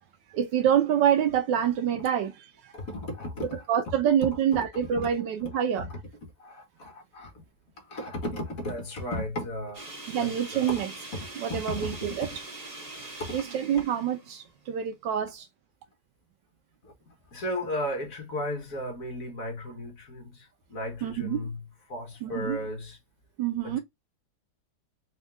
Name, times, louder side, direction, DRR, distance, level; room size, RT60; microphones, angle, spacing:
voice 1, 0.3-2.7 3.7-5.9 10.1-10.9 11.4-12.3 13.3-15.5 21.0-21.4 22.2-22.6 23.4-23.8, right 9 dB, 85° right, 1.3 m, -26 dB
voice 2, 2.7-3.6 5.5-5.6 5.9-6.0 6.4-7.4 7.8-9.9 10.2-10.8 11.1-11.9 13.2-13.4 16.8-16.9 17.3-23.0 23.6-23.8, left 1 dB, 50° left, 1.7 m, -35 dB
sound 1, 9.7-14.9, right 2 dB, 40° right, 0.6 m, -43 dB
4.4 x 2.5 x 3.5 m
omnidirectional pair, 1.9 m